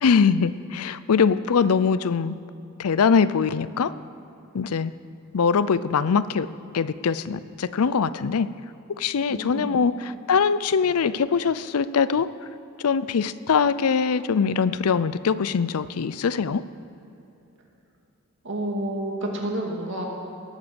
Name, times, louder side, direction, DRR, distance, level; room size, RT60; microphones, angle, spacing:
voice 1, 0.0-2.4 2.8-3.9 4.5-4.9 5.3-6.5 6.7-8.5 9.0-12.3 12.8-16.6, left 6 dB, 90° left, 16 dB, 0.5 m, -22 dB
voice 2, 9.3-9.8 18.4-20.0, right 1 dB, 60° right, 0 dB, 2.4 m, -29 dB
18.0 x 8.0 x 7.0 m, 2.9 s
head